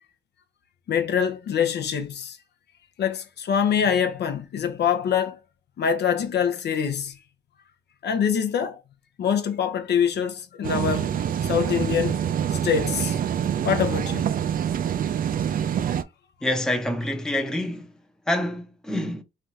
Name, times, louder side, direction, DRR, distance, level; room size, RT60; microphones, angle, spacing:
voice 1, 0.9-2.4 3.0-5.4 5.8-7.2 8.0-8.8 9.2-11.1 11.4-12.2 12.6-13.2 13.6-14.3, left 8 dB, 60° left, 0.6 m, -24 dB
sound 1, 10.6-16.0, right 9 dB, 45° right, 0.4 m, -26 dB
voice 2, 16.4-18.0 18.3-19.2, left 1 dB, 5° left, 0.7 m, -27 dB
3.3 x 2.4 x 2.7 m
cardioid pair, 90°, 20 cm